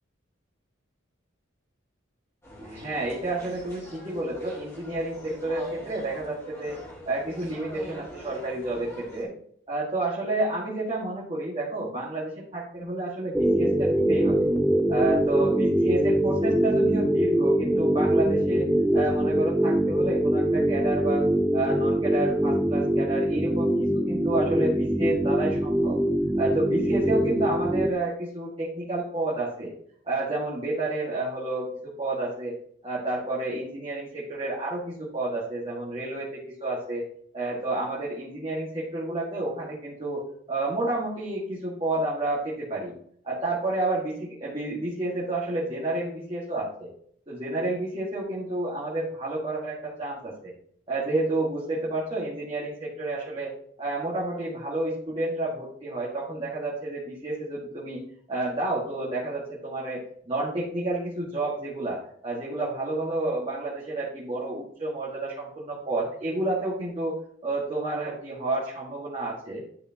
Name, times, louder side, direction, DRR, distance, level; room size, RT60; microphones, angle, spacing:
sound 1, 2.4-9.2, equal, 15° left, 2.4 m, -44 dB
voice 1, 2.6-6.8 7.1-9.3 9.7-14.5 14.9-18.6 18.9-21.2 21.5-26.0 26.4-29.7 30.0-32.6 32.8-37.0 37.3-42.9 43.2-46.9 47.3-50.5 50.9-53.5 53.8-67.2 67.4-69.6, right 2 dB, 30° right, -7 dB, 1.8 m, -30 dB
sound 2, 13.3-27.9, right 1 dB, 5° right, 0.4 m, -23 dB
11.0 x 5.0 x 2.9 m, 0.63 s
head